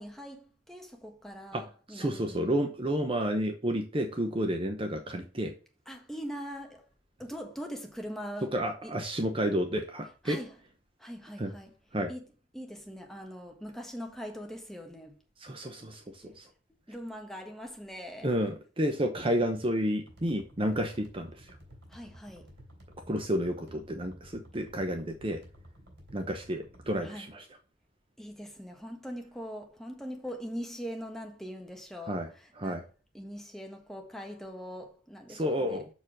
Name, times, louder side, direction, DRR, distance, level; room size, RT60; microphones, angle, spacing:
voice 1, 0.0-2.4 5.9-6.8 7.2-8.5 8.8-9.0 10.2-10.6 11.0-11.7 12.1-12.3 12.5-15.2 16.9-18.3 21.9-22.5 27.0-27.3 28.2-32.8 33.1-35.8, equal, ahead, 1.4 m, -42 dB
voice 2, 1.5-5.5 8.5-10.4 11.4-11.5 11.9-12.1 15.4-16.4 18.2-21.4 23.1-25.4 26.1-27.4 32.1-32.3 32.6-32.8 35.3-35.9, equal, 30° right, 0.8 m, -31 dB
sound 1, 20.1-27.1, equal, 65° right, 3.4 m, -53 dB
7.0 x 4.5 x 6.0 m
head